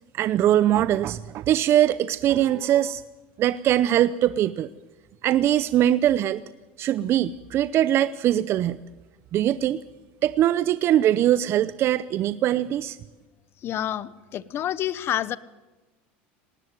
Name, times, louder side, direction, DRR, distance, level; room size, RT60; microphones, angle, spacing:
voice 1, 0.1-3.0 3.4-4.7 5.2-6.4 6.8-8.8 9.3-9.8 10.2-13.0, right 12 dB, 45° right, 16 dB, 0.6 m, -22 dB
voice 2, 13.6-15.4, left 11 dB, 45° left, 19 dB, 1.0 m, -28 dB
18.5 x 18.5 x 9.3 m, 1.1 s
supercardioid pair, 100°, 6 cm